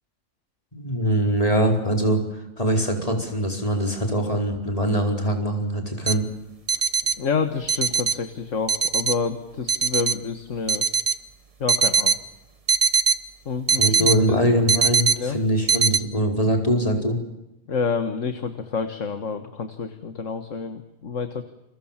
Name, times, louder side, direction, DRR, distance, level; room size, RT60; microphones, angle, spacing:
voice 1, 0.7-6.2 13.8-17.2, equal, 25° left, 3 dB, 4.8 m, -23 dB
sound 1, 6.1-6.2 6.7-7.1 7.7-8.1 8.7-9.1 9.7-10.1 10.7-11.1 11.7-12.2 12.7-13.2 13.7-14.2 14.7-15.2 15.7-16.0, right 5 dB, 30° right, 1.0 m, -20 dB
voice 2, 7.2-10.8 11.6-12.2 13.5-14.5 15.2-15.4 17.7-21.4, left 5 dB, 65° left, 8 dB, 1.9 m, -28 dB
29.5 x 24.0 x 7.4 m, 0.91 s
omnidirectional pair, 1.4 m